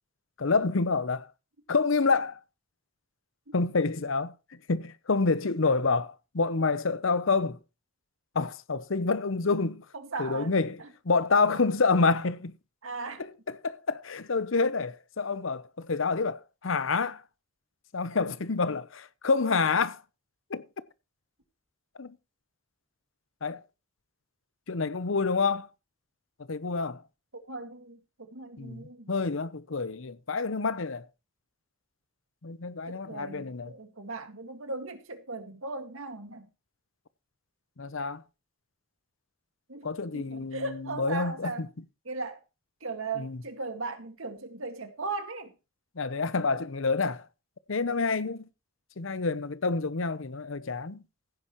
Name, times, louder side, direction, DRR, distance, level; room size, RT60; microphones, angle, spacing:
voice 1, 0.4-1.3 1.7-2.4 3.5-7.6 8.3-9.9 10.2-12.5 13.2-17.2 17.9-20.0 20.5-20.7 22.0-22.2 23.4-23.6 24.7-25.7 26.5-27.0 28.6-31.1 32.4-33.7 37.8-38.2 39.8-41.7 43.2-43.4 46.0-47.3 47.7-48.5 49.0-51.0, left 4 dB, 70° left, 0.8 m, -28 dB
voice 2, 10.1-10.5 12.8-13.2 27.3-29.1 32.9-36.5 39.7-39.9 40.1-41.6 42.1-42.4 42.8-45.5, right 3 dB, 75° right, 2.0 m, -37 dB
15.5 x 9.9 x 3.1 m
head